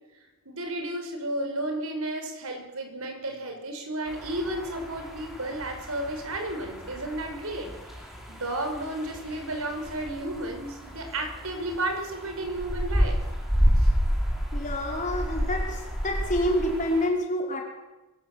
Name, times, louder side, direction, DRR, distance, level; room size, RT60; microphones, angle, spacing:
voice 1, 0.5-7.9 8.3-13.2 13.8-13.9, right 1 dB, 75° right, 4 dB, 5.5 m, -33 dB
sound 1, 4.1-17.1, equal, ahead, 5.3 m, -30 dB
voice 2, 14.5-17.6, left 1 dB, 35° left, 0 dB, 5.2 m, -27 dB
23.5 x 17.5 x 8.1 m, 1.1 s
head